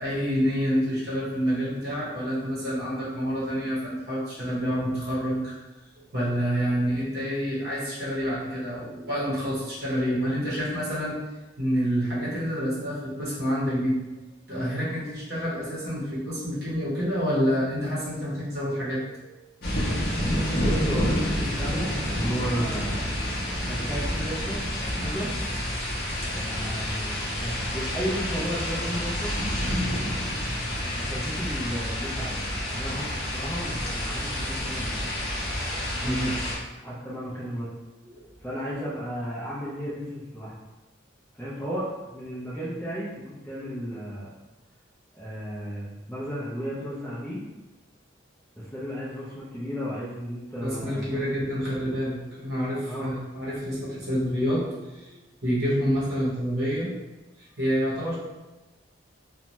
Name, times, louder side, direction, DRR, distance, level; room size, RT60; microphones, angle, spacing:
voice 1, 0.0-5.6 6.0-11.2 11.6-14.0 14.5-19.4 36.0-36.3 38.0-38.2 50.6-55.1 55.4-56.9 57.6-58.2, equal, 50° right, -8 dB, 0.8 m, -28 dB
sound 1, 19.6-36.6, equal, 50° left, 0.6 m, -29 dB
voice 2, 20.6-23.1 23.6-25.3 26.3-29.4 30.9-32.4 32.7-35.0 36.0-36.4 36.8-37.7 38.4-40.6 41.3-44.3 45.1-47.4 48.6-51.2 51.5-51.7 52.8-53.1, equal, 10° left, -11 dB, 0.4 m, -34 dB
2.6 x 2.2 x 3.0 m, 1.1 s
head